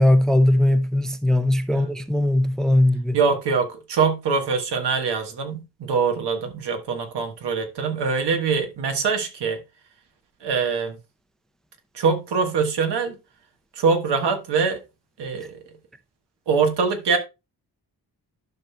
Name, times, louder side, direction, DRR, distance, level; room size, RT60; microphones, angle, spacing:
voice 1, 0.0-3.2 15.4-15.5, left 1 dB, ahead, 0.5 m, -19 dB
voice 2, 3.1-9.6 10.4-11.0 11.9-13.1 13.7-14.8 15.2-15.6 16.5-17.2, right 5 dB, 85° right, 1.4 m, -23 dB
11.5 x 5.7 x 2.2 m
cardioid pair, 95°, 40 cm